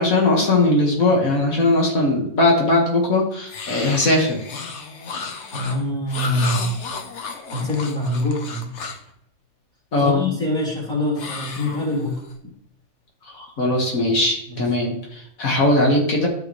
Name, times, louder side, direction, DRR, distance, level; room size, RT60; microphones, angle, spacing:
voice 1, 0.0-4.4 9.9-10.2 13.2-16.3, left 2 dB, 75° left, -1 dB, 2.0 m, -19 dB
sound 1, 3.5-9.1 11.2-12.3, left 4 dB, 60° left, 1.2 m, -33 dB
voice 2, 5.5-6.7 7.5-8.7 10.0-12.2 14.5-14.6, left 1 dB, 5° left, -6 dB, 2.9 m, -24 dB
12.5 x 4.9 x 3.1 m, 0.73 s
omnidirectional pair, 1.5 m